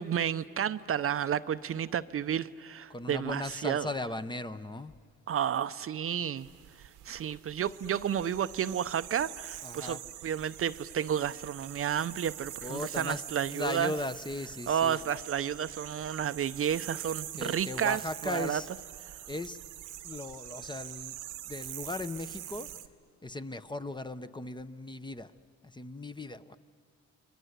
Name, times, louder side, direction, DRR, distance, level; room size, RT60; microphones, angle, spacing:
voice 1, 0.0-3.9 5.3-6.5 7.0-13.9 14.7-18.8, right 9 dB, 45° right, 13 dB, 0.6 m, -31 dB
voice 2, 2.9-4.9 9.6-10.0 12.6-13.2 13.5-15.0 17.4-18.7 19.3-19.6 20.0-21.1 21.5-22.7 23.2-25.3 25.8-26.6, left 2 dB, 15° left, 11 dB, 0.8 m, -37 dB
sound 1, 6.4-22.9, right 13 dB, 90° right, 1.1 m, -44 dB
29.5 x 22.5 x 8.1 m, 2.4 s
cardioid pair, 90°, 30 cm